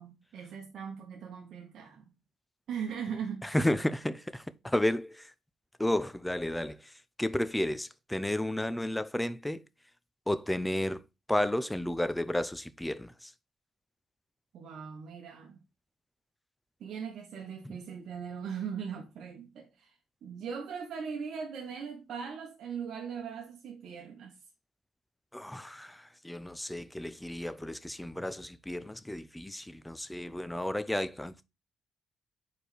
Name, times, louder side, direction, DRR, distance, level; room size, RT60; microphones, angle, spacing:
voice 1, 0.0-2.1 2.7-3.5 14.5-15.6 16.8-19.9 20.2-24.3, right 7 dB, 70° right, 1.1 m, -39 dB
voice 2, 3.4-5.3 5.8-6.9 7.2-9.6 10.3-11.0 11.3-13.3 25.3-31.4, left 1 dB, 5° left, 0.6 m, -32 dB
4.7 x 4.4 x 5.0 m
cardioid pair, 90°, 0 cm